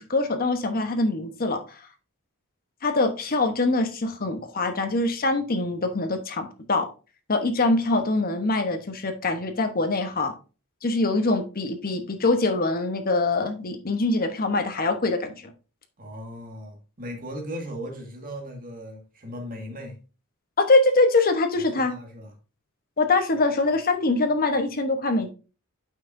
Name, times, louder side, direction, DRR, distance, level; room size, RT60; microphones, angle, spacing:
voice 1, 0.0-1.6 2.8-6.9 7.3-10.3 10.8-15.5 20.7-21.9 23.0-25.3, left 2 dB, 40° left, 1.0 m, -23 dB
voice 2, 16.0-20.0 21.6-22.3, equal, 40° right, 1.9 m, -37 dB
8.7 x 5.9 x 2.6 m
head